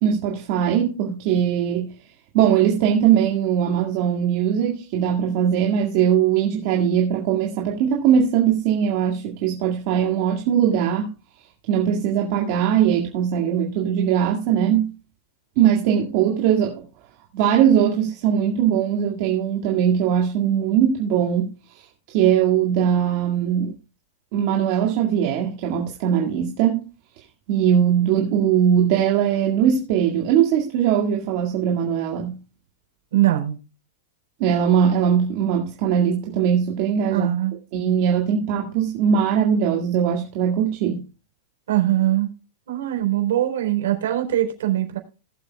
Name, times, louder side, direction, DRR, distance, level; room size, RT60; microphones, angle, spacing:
voice 1, 0.0-1.9 2.3-11.1 11.7-14.9 15.6-16.8 17.3-21.5 21.7-21.8 22.1-23.7 24.3-26.9 27.5-32.4 34.4-37.3 37.7-41.1, right 9 dB, 40° right, 2.0 m, -20 dB
voice 2, 33.1-33.6 37.1-37.5 41.7-42.3 42.7-45.0, right 13 dB, 80° right, 4.0 m, -21 dB
19.5 x 8.2 x 2.3 m
supercardioid pair, 170°, 0 cm